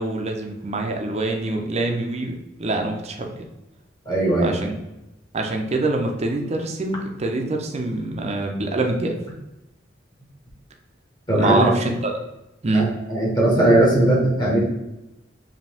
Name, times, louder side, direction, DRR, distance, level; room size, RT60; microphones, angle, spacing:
voice 1, 0.0-2.3 2.6-3.5 4.4-4.7 5.3-9.2 11.3-12.1 12.6-12.9, right 2 dB, 35° right, 2 dB, 0.6 m, -24 dB
voice 2, 4.0-4.6 11.3-11.7 12.7-14.6, right 1 dB, 25° left, -4 dB, 1.3 m, -19 dB
5.0 x 2.8 x 3.4 m, 0.95 s
head